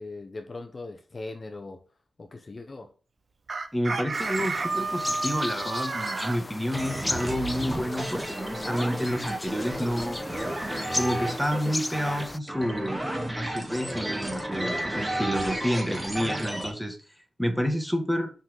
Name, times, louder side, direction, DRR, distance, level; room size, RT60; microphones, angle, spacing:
voice 1, 0.0-1.8 2.2-2.9 4.2-4.3, left 2 dB, 40° left, 1.0 m, -40 dB
Chicken rooster, 3.5-6.4, right 3 dB, 55° right, 1.1 m, -30 dB
voice 2, 3.7-10.2 10.9-13.0 13.3-17.0 17.4-18.3, equal, ahead, 1.7 m, -29 dB
sound 1, 4.1-12.4, left 2 dB, 20° left, 0.4 m, -36 dB
sound 2, 6.7-16.7, right 1 dB, 15° right, 2.3 m, -32 dB
5.8 x 5.7 x 5.3 m
wide cardioid pair, 100°, 0 cm